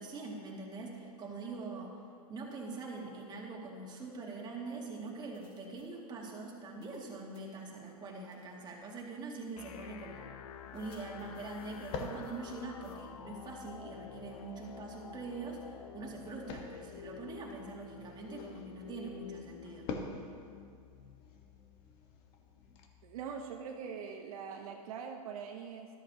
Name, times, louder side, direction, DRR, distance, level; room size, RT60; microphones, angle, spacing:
voice 1, 0.0-2.0 2.3-10.3 10.7-19.9, right 3 dB, 20° right, -2 dB, 2.1 m, -44 dB
sound 1, 4.7-4.8 5.3-5.8 6.8-7.0 7.3-7.4 8.3-8.5 9.2-9.3 10.7-12.6 12.8-13.0, left 4 dB, 25° left, 3.1 m, -64 dB
sound 2, 9.6-23.5, left 9 dB, 70° left, 0.8 m, -50 dB
sound 3, 10.5-22.9, left 4 dB, 50° left, 1.3 m, -48 dB
voice 2, 23.0-25.9, right 6 dB, 65° right, 3 dB, 0.9 m, -42 dB
13.0 x 13.0 x 2.9 m, 2.2 s
hypercardioid pair, 120°, 20 cm